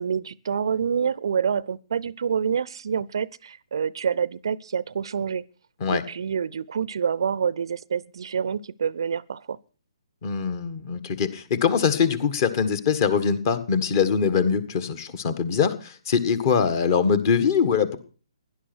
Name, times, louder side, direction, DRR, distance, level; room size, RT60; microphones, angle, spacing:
voice 1, 0.0-5.4 5.9-9.6, right 7 dB, 50° right, 0.6 m, -27 dB
voice 2, 10.2-18.0, left 6 dB, 35° left, 1.7 m, -23 dB
17.0 x 11.0 x 6.1 m
figure-of-eight pair, 135°, 3 cm